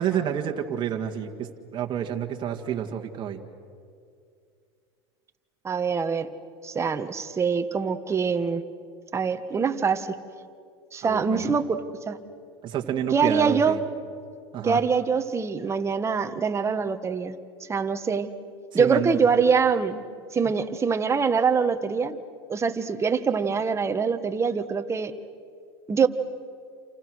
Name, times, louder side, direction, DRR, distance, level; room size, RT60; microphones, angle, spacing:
voice 1, 0.0-3.4 11.0-11.5 12.6-13.8 14.5-14.8 18.7-19.1, right 9 dB, 35° right, 2 dB, 1.9 m, -29 dB
voice 2, 5.6-6.3 6.6-8.6 9.1-10.1 10.9-12.2 13.1-13.8 14.6-17.3 17.7-18.3 18.7-20.0 20.3-22.2 22.5-25.1 25.9-26.1, right 5 dB, 20° right, 8 dB, 1.4 m, -24 dB
28.5 x 28.0 x 6.3 m, 2.3 s
supercardioid pair, 110°, 14 cm